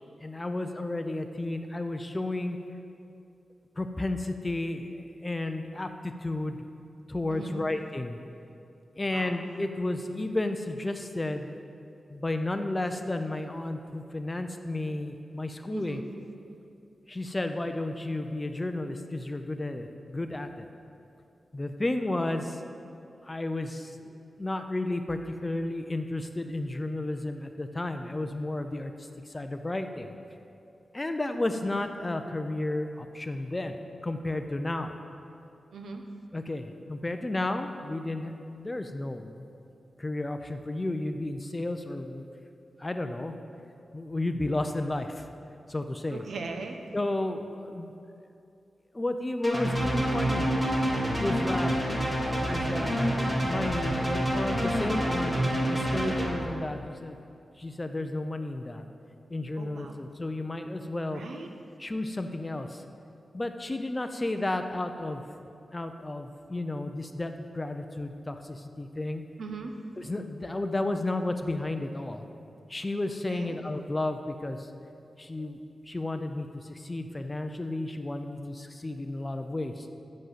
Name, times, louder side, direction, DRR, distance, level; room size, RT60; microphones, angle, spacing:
voice 1, 0.2-2.6 3.8-6.6 7.1-8.2 9.0-11.6 12.1-16.0 17.1-20.7 21.5-22.6 23.2-30.1 30.9-34.9 36.3-39.5 40.0-42.2 42.8-43.3 43.9-45.3 45.7-46.2 46.9-47.9 48.9-50.6 51.2-51.7 52.5-52.9 53.4-55.4 55.7-57.2 57.6-58.8 59.3-61.2 61.8-62.8 63.3-65.2 65.7-69.2 70.0-72.2 72.7-74.7 75.2-75.6 75.9-79.9, left 2 dB, 20° left, 7 dB, 0.5 m, -32 dB
voice 2, 7.3-7.6 9.1-9.3 15.7-16.0 35.7-36.0 46.1-46.8 59.6-59.9 61.1-61.5 69.4-69.7 73.1-73.5, right 4 dB, 90° right, 4 dB, 0.9 m, -39 dB
sound 1, 49.4-56.3, equal, 10° right, 1.5 m, -27 dB
8.0 x 6.4 x 7.4 m, 2.6 s
wide cardioid pair, 130°, 0 cm